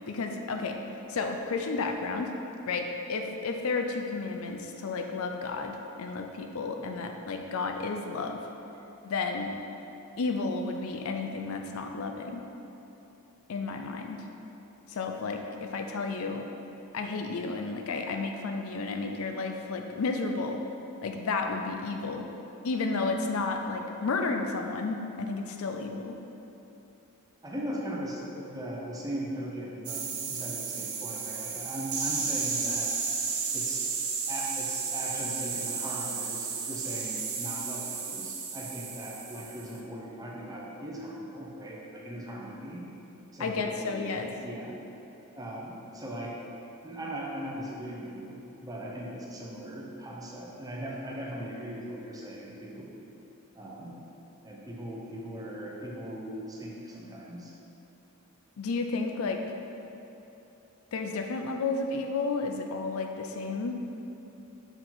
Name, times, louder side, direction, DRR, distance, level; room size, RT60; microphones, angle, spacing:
voice 1, 0.1-0.8 1.1-2.3 2.6-8.4 9.0-9.5 10.2-12.5 13.5-14.2 14.9-16.5 16.9-20.6 21.0-22.3 22.6-26.2 43.4-44.3 58.6-59.5 60.9-63.8, left 3 dB, 65° left, 4 dB, 0.4 m, -32 dB
voice 2, 27.4-33.0 33.5-33.9 34.3-42.9 43.3-44.8 45.3-46.4 46.8-52.9 53.5-54.0 54.4-57.5, equal, 15° right, -3 dB, 0.7 m, -39 dB
sound 1, 29.8-39.7, right 5 dB, 70° right, 0.7 m, -33 dB
5.8 x 4.7 x 3.9 m, 3.0 s
head